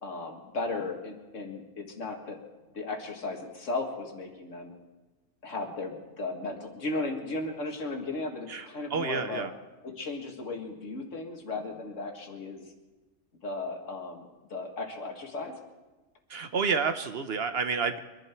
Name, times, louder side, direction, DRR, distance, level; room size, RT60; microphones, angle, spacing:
voice 1, 0.0-2.4 2.7-4.7 5.4-9.5 9.8-12.6 13.4-15.5, left 3 dB, 75° left, 2 dB, 2.2 m, -36 dB
voice 2, 8.5-9.5 16.3-18.0, right 5 dB, 55° right, 9 dB, 1.0 m, -30 dB
24.5 x 11.5 x 4.5 m, 1.2 s
omnidirectional pair, 1.3 m